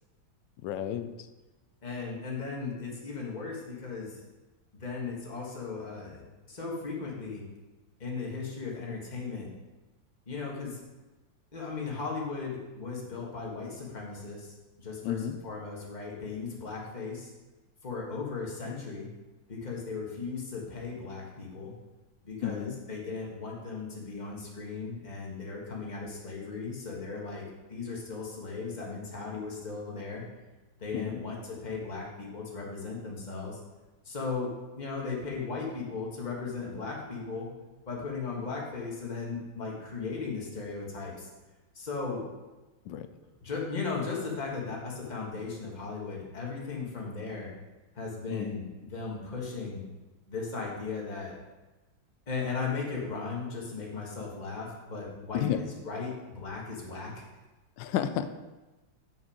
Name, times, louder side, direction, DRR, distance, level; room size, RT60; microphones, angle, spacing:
voice 1, 0.6-1.1 15.0-15.4 22.4-22.7 30.9-31.2 42.9-43.1 48.3-48.6 55.3-55.6 57.8-58.3, left 10 dB, 80° left, 10 dB, 1.2 m, -31 dB
voice 2, 1.8-4.2 4.8-7.4 8.0-9.5 10.3-10.8 11.5-17.3 17.8-19.1 19.5-21.7 22.2-27.4 27.7-30.2 30.8-33.6 34.0-34.5 34.8-37.5 37.9-41.3 41.7-42.2 43.4-47.5 47.9-48.6 48.9-49.8 50.3-51.3 52.3-57.2, left 4 dB, 25° left, -2 dB, 1.5 m, -37 dB
7.1 x 6.1 x 5.0 m, 1.1 s
omnidirectional pair, 2.0 m